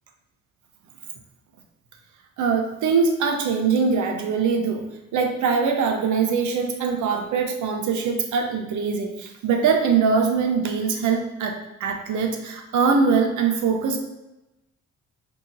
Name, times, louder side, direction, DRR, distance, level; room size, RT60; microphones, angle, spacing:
voice 1, 2.4-4.9 5.1-14.0, right 5 dB, 75° right, 4 dB, 0.7 m, -22 dB
5.5 x 2.9 x 2.5 m, 0.94 s
cardioid pair, 90°, 30 cm